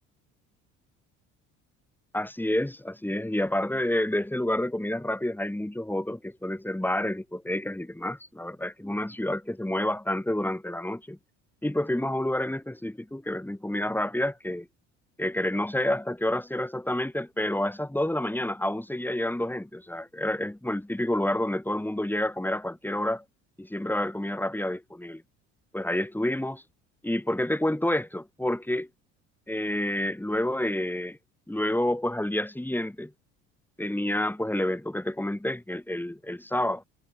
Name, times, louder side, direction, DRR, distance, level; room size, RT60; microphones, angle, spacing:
voice 1, 2.1-11.2 11.6-14.7 15.2-23.2 23.6-25.2 25.7-26.6 27.0-28.9 29.5-31.2 31.5-33.1 33.8-36.8, left 1 dB, 5° left, 6.0 m, -29 dB
supercardioid pair, 75°, 34 cm